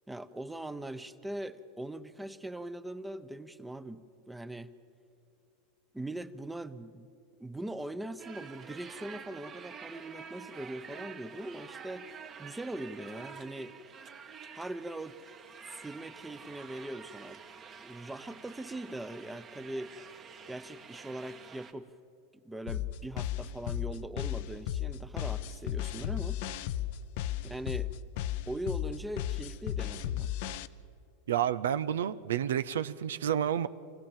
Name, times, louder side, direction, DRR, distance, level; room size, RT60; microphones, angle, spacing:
voice 1, 0.1-4.0 4.3-4.7 5.9-7.1 7.4-13.7 14.5-15.2 15.6-17.4 17.8-20.0 20.5-21.9 22.3-26.7 27.4-27.9 28.5-30.3, right 1 dB, 5° right, 11 dB, 0.8 m, -41 dB
sound 1, 8.2-21.7, right 6 dB, 35° right, 1.3 m, -49 dB
sound 2, 22.7-30.7, left 11 dB, 65° left, 0.6 m, -34 dB
voice 2, 31.3-33.7, right 10 dB, 90° right, 14 dB, 0.5 m, -30 dB
24.5 x 16.0 x 7.4 m, 2.6 s
hypercardioid pair, 115°, 0 cm